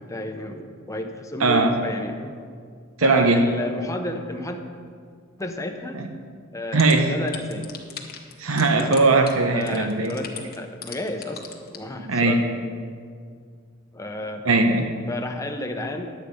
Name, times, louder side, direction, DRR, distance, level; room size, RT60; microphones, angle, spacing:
voice 1, 0.0-2.3 3.0-4.6 5.4-6.0 6.5-6.8 7.1-7.7 8.7-9.0 9.5-11.4 11.7-12.4 13.9-14.4 15.1-16.1, left 1 dB, 15° left, 4 dB, 0.8 m, -32 dB
voice 2, 1.4-1.7 3.0-3.5 5.9-6.0 6.7-7.1 8.4-10.2 12.0-12.4 14.4-14.9, right 3 dB, 80° right, 5 dB, 0.8 m, -19 dB
sound 1, 6.8-6.9 7.3-8.3 8.6-9.0 9.3-9.4 9.6-11.8, left 9 dB, 45° left, 1.1 m, -35 dB
10.5 x 8.3 x 5.1 m, 2.1 s
head